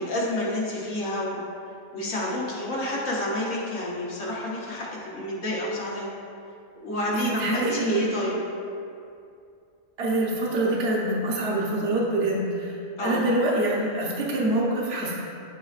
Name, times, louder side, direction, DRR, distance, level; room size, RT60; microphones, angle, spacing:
voice 1, 0.0-1.4 1.9-6.1 6.8-8.3 13.0-13.2, left 1 dB, 90° left, -5 dB, 1.5 m, -29 dB
voice 2, 7.1-8.3 10.0-12.7 13.0-15.1, right 1 dB, 55° right, -3 dB, 1.1 m, -25 dB
9.2 x 4.3 x 2.4 m, 2.5 s
omnidirectional pair, 1.3 m